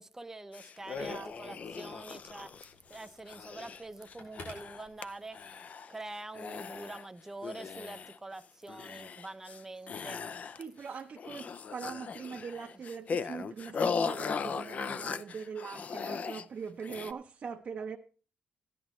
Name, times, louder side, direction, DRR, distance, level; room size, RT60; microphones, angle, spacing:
voice 1, 0.0-5.5 5.9-10.2, right 2 dB, 15° right, 0.6 m, -45 dB
sound 1, 0.5-5.0 5.3-6.0 6.3-7.1 7.4-8.3 8.7-9.6 9.9-10.9 11.2-16.5 16.8-17.1, left 5 dB, 50° left, 0.5 m, -38 dB
Telephone, 0.8-5.6, left 2 dB, 85° left, 5.3 m, -55 dB
voice 2, 1.0-1.6 10.6-18.0, right 6 dB, 50° right, 0.7 m, -42 dB
15.0 x 11.0 x 3.1 m
cardioid pair, 110°, 3 cm